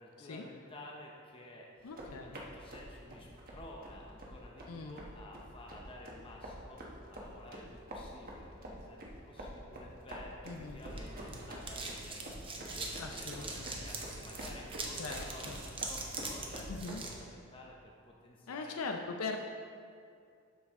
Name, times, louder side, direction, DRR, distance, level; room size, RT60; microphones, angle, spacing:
voice 1, 0.0-16.7 17.0-18.7 19.0-19.2, left 1 dB, 25° left, -1 dB, 0.7 m, -52 dB
voice 2, 1.8-2.4 4.7-5.0 10.5-10.8 13.0-13.9 15.0-15.6 16.7-17.0 18.5-19.4, left 4 dB, 80° left, 4 dB, 0.5 m, -41 dB
sound 1, 1.8-16.9, equal, 45° right, 1.1 m, -47 dB
Gum Wrapper Slow, 10.5-17.2, right 3 dB, 25° right, 0.9 m, -43 dB
12.5 x 4.7 x 3.6 m, 2.3 s
head